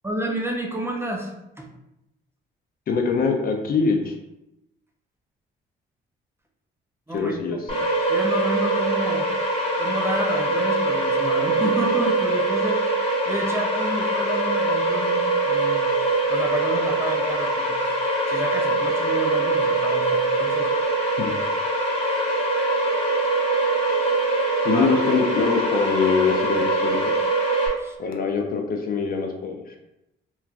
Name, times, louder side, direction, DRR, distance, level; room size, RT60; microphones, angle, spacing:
voice 1, 0.0-1.3 1.6-1.7 7.1-7.4 8.1-9.3 9.8-13.0 13.2-15.9 16.3-17.9 18.3-20.7 24.7-24.9 27.8-28.0, right 1 dB, 10° right, 0 dB, 0.4 m, -30 dB
voice 2, 2.9-4.2 7.1-7.6 21.2-21.3 24.6-27.0 28.0-29.6, left 5 dB, 50° left, 3 dB, 0.5 m, -23 dB
sound 1, 7.7-27.7, right 2 dB, 30° left, 1.1 m, -23 dB
3.0 x 2.3 x 2.4 m, 0.89 s
cardioid pair, 90°, 20 cm